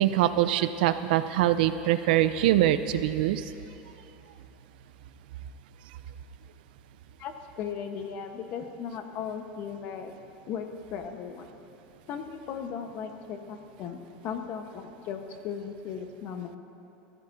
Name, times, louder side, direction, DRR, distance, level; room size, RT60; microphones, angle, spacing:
voice 1, 0.0-3.4, right 13 dB, 70° right, 12 dB, 0.6 m, -23 dB
voice 2, 7.2-10.1 10.5-11.5 12.1-16.6, left 7 dB, 40° left, 5 dB, 1.0 m, -37 dB
24.0 x 14.0 x 2.7 m, 3.0 s
supercardioid pair, 160°, 5 cm